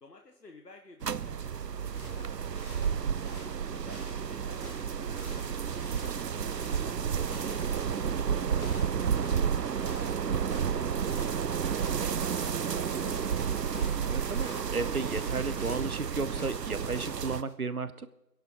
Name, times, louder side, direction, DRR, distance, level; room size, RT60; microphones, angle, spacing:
voice 1, 0.0-5.4 6.0-9.4 9.7-12.8, left 3 dB, 85° left, 3 dB, 1.7 m, -55 dB
sound 1, 1.0-17.4, right 7 dB, 90° right, 0.7 m, -31 dB
sound 2, 1.8-17.5, left 2 dB, 60° left, 2.5 m, -51 dB
voice 2, 7.2-7.6 14.1-18.1, right 4 dB, 65° right, 14 dB, 1.1 m, -34 dB
sound 3, 11.6-16.6, equal, ahead, 0.4 m, -54 dB
26.5 x 11.0 x 3.9 m, 0.95 s
figure-of-eight pair, 175°, 48 cm